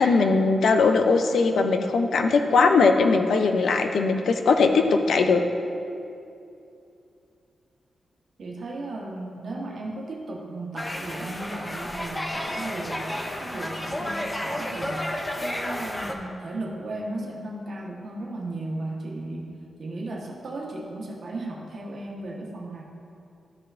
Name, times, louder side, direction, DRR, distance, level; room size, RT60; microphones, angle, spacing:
voice 1, 0.0-5.4, left 4 dB, 75° left, 6 dB, 0.5 m, -20 dB
voice 2, 8.4-15.1 15.4-22.8, right 2 dB, 60° right, -2 dB, 1.2 m, -35 dB
sound 1, 10.8-16.1, left 1 dB, 15° left, 0.5 m, -31 dB
12.0 x 5.7 x 2.5 m, 2.6 s
wide cardioid pair, 150°, 0 cm